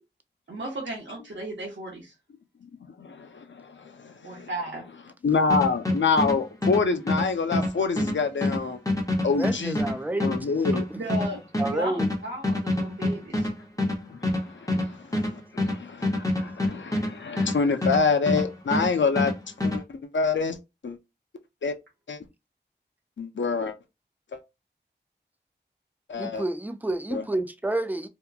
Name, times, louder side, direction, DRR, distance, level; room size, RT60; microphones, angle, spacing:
voice 1, 0.5-2.1 4.2-4.8 11.0-13.5 14.7-14.8 15.6-15.7, right 1 dB, 85° right, 0.7 m, -35 dB
voice 2, 2.6-4.5 5.2-8.8 9.2-9.8 10.2-10.9 14.1-19.3 19.6-20.6 20.8-21.0 21.6-21.8 22.1-22.2 23.2-23.8 24.3-24.4 26.1-26.4 27.1-27.2, left 4 dB, 85° left, 0.4 m, -27 dB
sound 1, 5.5-18.5 18.7-19.8, left 1 dB, 20° left, 0.8 m, -26 dB
voice 3, 9.4-10.6 11.6-12.1 26.2-28.1, right 2 dB, 10° right, 0.4 m, -29 dB
2.8 x 2.2 x 2.3 m
wide cardioid pair, 40°, 19 cm